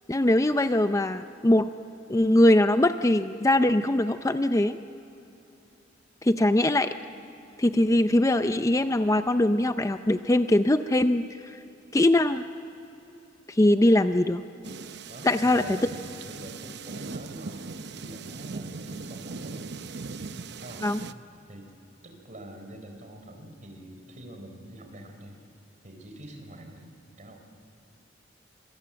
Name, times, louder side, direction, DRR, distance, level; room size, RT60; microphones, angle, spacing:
voice 1, 0.1-1.7 2.1-4.8 6.2-6.9 7.6-11.6 11.9-12.4 13.5-14.4 15.2-15.6 20.8-21.0, left 1 dB, 15° left, 10 dB, 0.5 m, -22 dB
sound 1, 14.6-21.1, right 4 dB, 60° right, 0.8 m, -39 dB
voice 2, 15.1-17.6 17.9-19.7 20.6-20.9 21.5-21.7 22.0-25.4 25.8-27.4, right 1 dB, 40° right, 4 dB, 4.0 m, -44 dB
26.0 x 22.5 x 8.8 m, 2.9 s
head